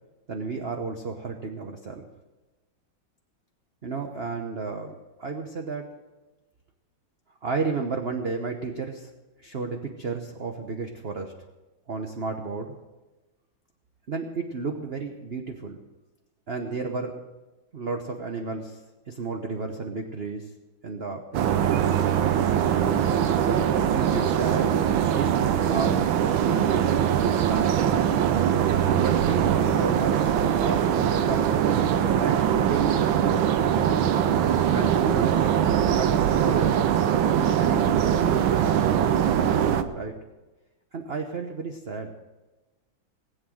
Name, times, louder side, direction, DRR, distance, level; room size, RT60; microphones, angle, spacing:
voice 1, 0.3-2.1 3.8-5.9 7.4-9.1 9.4-11.3 11.9-12.7 14.1-15.8 16.5-17.2 17.7-18.8 19.1-20.5 20.8-21.7 23.3-27.7 28.8-33.5 34.7-35.4 36.0-36.8 37.4-39.0 39.9-40.2 40.9-42.1, right 4 dB, 40° right, 4 dB, 1.0 m, -32 dB
sound 1, 21.3-39.8, right 9 dB, 90° right, 1.7 m, -22 dB
20.0 x 8.1 x 7.8 m, 1.1 s
omnidirectional pair, 2.1 m